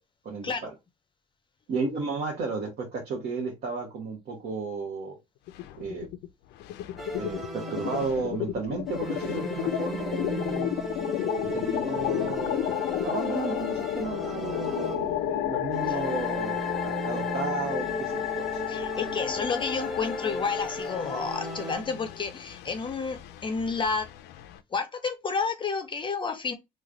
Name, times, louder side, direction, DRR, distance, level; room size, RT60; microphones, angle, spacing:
voice 1, 0.2-0.7 1.7-5.2 5.8-6.1 7.2-10.8 11.5-16.6 16.8-18.6, right 4 dB, 65° right, 1.1 m, -33 dB
sound 1, 5.5-6.3 6.6-24.6, left 12 dB, 85° left, 0.4 m, -32 dB
sound 2, 7.0-8.5 8.9-15.3 15.7-22.2, equal, ahead, 0.8 m, -36 dB
voice 2, 18.7-24.1 24.7-26.5, left 5 dB, 30° left, 0.5 m, -30 dB
3.1 x 2.2 x 3.8 m
cardioid pair, 110°, 17 cm